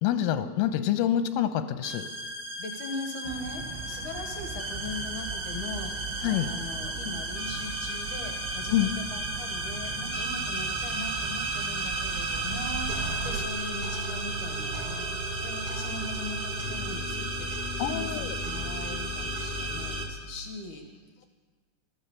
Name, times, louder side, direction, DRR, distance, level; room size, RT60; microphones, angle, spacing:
voice 1, 0.0-2.1 6.2-6.5 8.7-8.9 17.8-18.4, left 11 dB, 90° left, 9 dB, 3.4 m, -26 dB
sound 1, 1.8-20.1, right 2 dB, 55° right, 1.1 m, -33 dB
voice 2, 2.6-20.9 21.2-21.3, left 3 dB, 70° left, 3 dB, 1.9 m, -40 dB
sound 2, 3.2-13.5, right 6 dB, 75° right, 2.7 m, -39 dB
15.0 x 13.0 x 7.2 m, 1.4 s
omnidirectional pair, 5.8 m